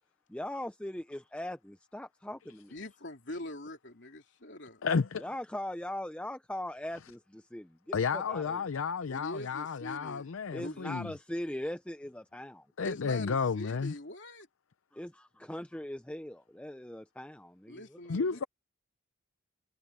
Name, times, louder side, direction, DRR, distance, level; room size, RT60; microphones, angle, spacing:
voice 1, 0.3-2.8 5.2-8.7 10.5-12.7 14.9-18.3, left 1 dB, 5° left, 0.5 m, -40 dB
voice 2, 2.7-4.8 9.1-11.0 12.8-14.5 17.7-18.5, left 1 dB, 60° left, 2.9 m, -43 dB
voice 3, 4.8-5.2 7.9-11.1 12.8-13.9 18.1-18.4, left 5 dB, 85° left, 0.6 m, -32 dB
head